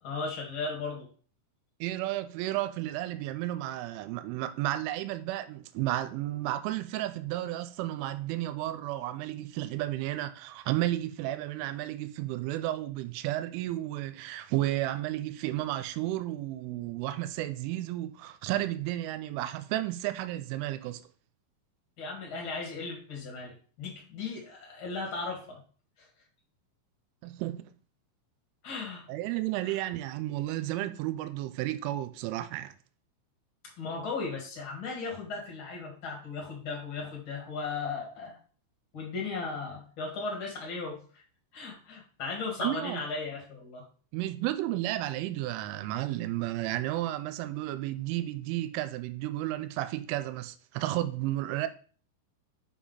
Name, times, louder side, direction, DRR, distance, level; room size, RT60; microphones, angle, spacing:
voice 1, 0.0-1.1 22.0-25.6 26.0-26.1 28.6-29.0 29.6-29.9 33.8-38.4 38.9-41.2 41.5-43.8, left 4 dB, 50° left, 1.5 m, -36 dB
voice 2, 1.8-21.0 27.2-27.7 29.1-32.7 42.6-43.0 44.1-51.7, right 15 dB, 85° right, 3.1 m, -32 dB
6.2 x 6.1 x 4.0 m
omnidirectional pair, 5.6 m